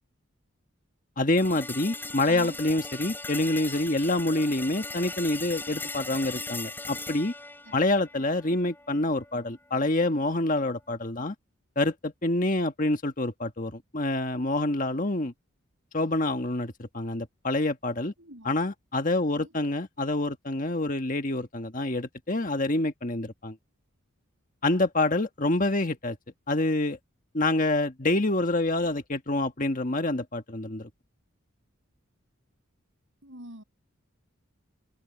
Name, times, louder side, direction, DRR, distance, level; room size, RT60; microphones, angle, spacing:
voice 1, 1.2-7.3 7.7-11.3 11.7-15.3 15.9-18.1 18.4-23.6 24.6-26.2 26.5-27.0 27.3-30.9, left 2 dB, 40° left, 1.5 m, -27 dB
sound 1, 1.4-9.4, left 3 dB, 10° left, 6.6 m, -39 dB
voice 2, 2.3-2.6 7.6-7.7 18.2-18.5 19.3-19.5 33.2-33.6, right 1 dB, 65° right, 7.7 m, -44 dB
head